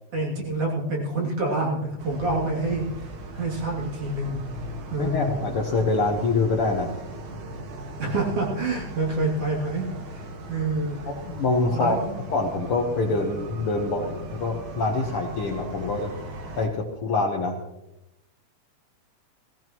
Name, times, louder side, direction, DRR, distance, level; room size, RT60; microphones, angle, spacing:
voice 1, 0.1-4.5 4.9-5.5 8.0-11.1 11.7-12.2, right 2 dB, 50° right, -3 dB, 3.7 m, -27 dB
sound 1, 2.0-16.7, right 1 dB, 85° right, 3.3 m, -38 dB
voice 2, 5.0-6.9 11.1-12.0 12.3-16.1 16.6-17.6, left 3 dB, 55° left, 1 dB, 1.7 m, -25 dB
18.0 x 16.5 x 3.1 m, 0.92 s
omnidirectional pair, 3.5 m